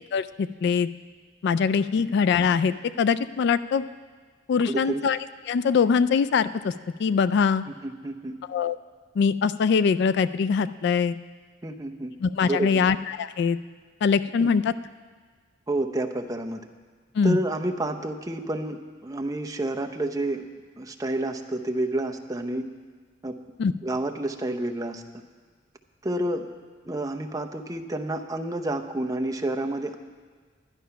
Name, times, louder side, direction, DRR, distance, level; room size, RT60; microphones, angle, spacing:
voice 1, 0.1-0.9 1.4-3.8 4.5-5.2 5.5-6.7 7.0-7.7 8.5-8.8 9.2-11.2 12.2-13.6 14.0-14.7 17.1-17.4 23.6-23.7, left 6 dB, 60° left, 14 dB, 0.3 m, -23 dB
voice 2, 4.7-5.0 7.8-8.4 11.6-12.1 12.5-12.8 14.4-14.5 15.7-16.6 17.2-20.5 20.8-22.7 23.2-23.3 23.8-25.0 26.0-26.5 26.9-30.0, right 1 dB, 20° right, 4 dB, 0.7 m, -29 dB
11.5 x 11.0 x 5.7 m, 1.5 s
head